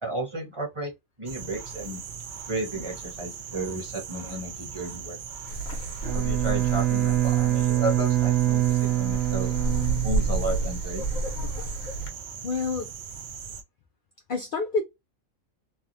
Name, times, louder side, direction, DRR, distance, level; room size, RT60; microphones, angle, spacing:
voice 1, 0.0-0.9 1.2-2.0 2.5-5.2 6.1-9.5 10.0-11.1, right 1 dB, 25° right, 1.1 m, -33 dB
sound 1, 1.3-13.6, right 7 dB, 70° right, 0.4 m, -40 dB
Wind, 5.5-12.1, right 2 dB, 80° left, 1.4 m, -31 dB
Bowed string instrument, 6.0-10.8, right 14 dB, 55° right, 1.0 m, -25 dB
voice 2, 12.4-12.9 14.3-14.8, left 4 dB, 55° left, 0.6 m, -27 dB
3.4 x 2.2 x 2.6 m
omnidirectional pair, 1.4 m